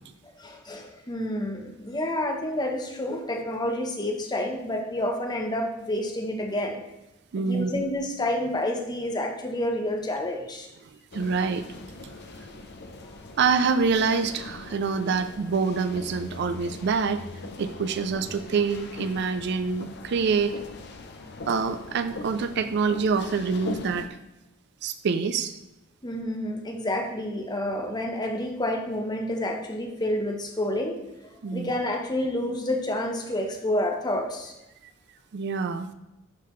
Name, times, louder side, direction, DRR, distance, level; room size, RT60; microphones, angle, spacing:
voice 1, 0.4-6.8 7.5-10.7 26.0-31.0 31.5-34.6, left 1 dB, 20° left, 2 dB, 0.9 m, -29 dB
voice 2, 7.3-7.9 11.1-11.7 12.0-12.1 13.4-17.2 17.6-20.5 21.5-24.1 24.8-25.5 31.4-31.7 35.3-35.9, right 5 dB, 55° right, 10 dB, 0.4 m, -26 dB
sound 1, 11.1-24.1, left 2 dB, 55° left, 0.6 m, -41 dB
11.0 x 3.9 x 3.1 m, 0.92 s
head